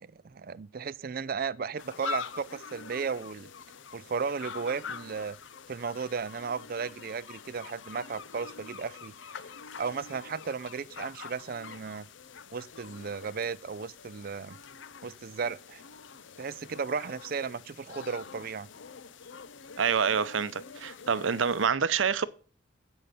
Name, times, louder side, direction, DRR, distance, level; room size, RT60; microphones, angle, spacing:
voice 1, 0.0-3.5 3.9-5.4 5.7-9.1 9.8-12.1 12.5-14.6 15.0-15.8 16.4-18.7, right 5 dB, 50° right, 0.4 m, -35 dB
sound 1, 1.8-21.7, left 5 dB, 75° left, 0.6 m, -45 dB
voice 2, 19.8-22.3, right 6 dB, 85° right, 0.7 m, -27 dB
15.5 x 5.6 x 6.7 m
head